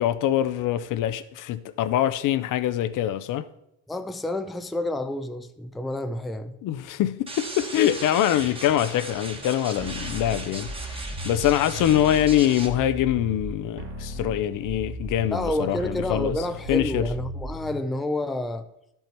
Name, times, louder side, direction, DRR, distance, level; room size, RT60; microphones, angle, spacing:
voice 1, 0.0-3.4 6.6-16.4 16.7-17.1, left 12 dB, 60° left, 0.6 m, -24 dB
voice 2, 3.9-6.6 15.3-18.7, left 1 dB, ahead, 0.4 m, -29 dB
sound 1, 7.3-12.7, right 2 dB, 15° right, 1.4 m, -37 dB
sound 2, 9.8-17.8, right 1 dB, 40° right, 1.4 m, -36 dB
11.5 x 5.5 x 4.4 m
cardioid pair, 115°, 35 cm